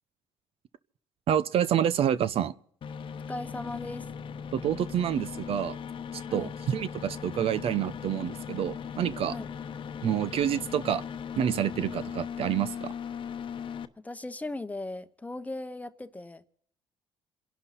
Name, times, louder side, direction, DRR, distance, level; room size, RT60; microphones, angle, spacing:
voice 1, 1.3-2.5 4.5-5.8 6.1-9.4 10.0-11.0 11.4-12.9, right 9 dB, 60° right, 0.8 m, -28 dB
sound 1, 2.8-13.8, left 7 dB, 50° left, 1.0 m, -38 dB
voice 2, 3.3-4.1 6.3-6.5 9.3-9.5 14.0-16.4, left 2 dB, 15° left, 0.9 m, -37 dB
28.0 x 11.5 x 4.2 m
cardioid pair, 100°, 11 cm